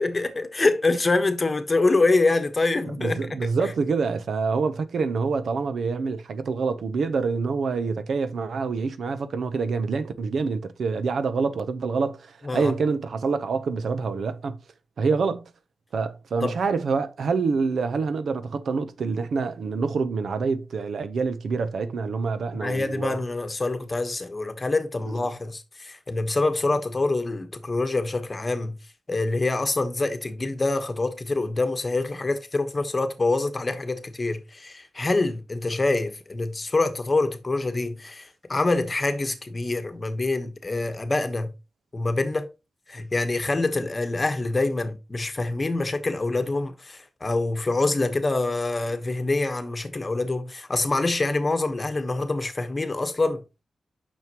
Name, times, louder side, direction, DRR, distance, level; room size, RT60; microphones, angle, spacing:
voice 1, 0.0-3.3 12.4-12.7 16.4-16.5 22.6-28.8 29.1-41.5 41.9-42.5 42.9-53.4, left 2 dB, 30° left, 1.2 m, -25 dB
voice 2, 3.0-14.6 15.0-15.5 15.9-23.2 25.1-25.3, right 4 dB, 80° right, 0.8 m, -26 dB
9.2 x 6.3 x 3.0 m
wide cardioid pair, 115°, 0 cm